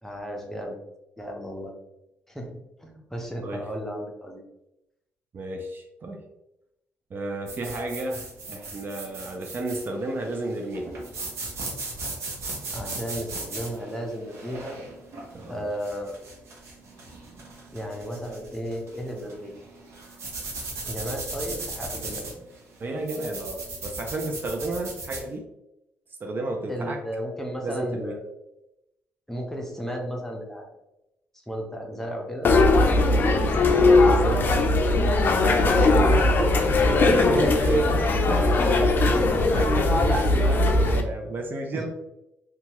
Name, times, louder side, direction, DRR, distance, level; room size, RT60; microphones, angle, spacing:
voice 1, 0.0-0.8 1.2-1.7 2.3-2.5 2.8-4.4 12.7-14.8 15.5-16.1 17.7-19.5 20.9-22.4 26.7-28.3 29.3-30.7 31.5-32.5 33.5-33.8 37.3-37.6 39.1-39.6 41.7-41.9, equal, 10° left, 1 dB, 0.7 m, -34 dB
voice 2, 5.3-6.2 7.1-10.9 15.3-15.7 22.8-25.5 26.2-27.0 27.6-28.1 33.6-34.6 35.5-38.7 39.4-41.9, right 2 dB, 45° right, 3 dB, 0.5 m, -31 dB
sound 1, 7.5-25.3, right 3 dB, 70° right, 0.8 m, -38 dB
sound 2, 32.4-41.0, left 2 dB, 45° left, 0.4 m, -19 dB
2.8 x 2.3 x 2.9 m, 0.88 s
cardioid pair, 80°, 5 cm